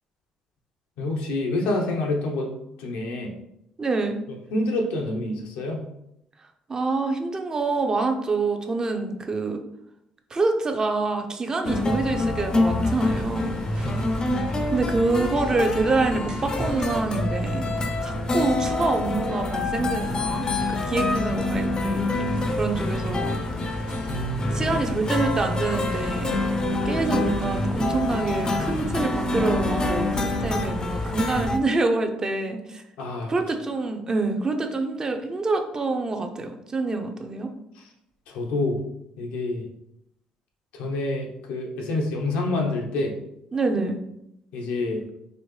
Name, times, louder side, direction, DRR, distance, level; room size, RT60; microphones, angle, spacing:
voice 1, 1.0-2.5 2.8-3.3 4.5-5.9 13.8-14.0 24.1-24.8 33.0-33.3 38.3-38.8 39.2-39.7 40.7-43.1 44.5-45.0, left 2 dB, 85° left, 1 dB, 0.8 m, -27 dB
voice 2, 3.8-4.2 6.7-9.6 10.3-14.0 14.7-17.7 18.0-23.3 24.5-26.4 26.8-32.8 33.3-37.5 43.5-44.0, right 3 dB, 30° right, 4 dB, 0.6 m, -26 dB
sound 1, 11.6-31.6, left 2 dB, 35° left, 0.5 m, -26 dB
sound 2, 13.0-31.1, equal, 45° right, 1.1 m, -40 dB
4.3 x 2.6 x 3.2 m, 0.80 s
supercardioid pair, 80°, 2 cm